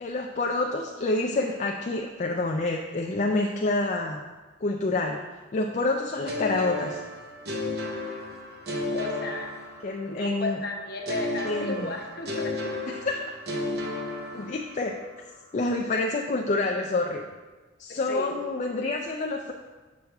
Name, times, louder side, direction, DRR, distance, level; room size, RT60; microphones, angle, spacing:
voice 1, 0.0-4.2 4.6-5.2 5.5-7.0 9.8-10.6 11.4-11.9 12.9-13.0 14.3-15.0 15.5-17.2 17.8-19.5, left 2 dB, 40° left, 1 dB, 0.4 m, -27 dB
sound 1, 6.3-10.2 11.1-14.9, left 2 dB, 60° right, 1.0 m, -33 dB
voice 2, 8.9-9.5 10.1-12.7 15.9-16.0 17.9-18.3, left 2 dB, 55° left, 1 dB, 1.0 m, -34 dB
6.5 x 6.2 x 3.5 m, 1.3 s
head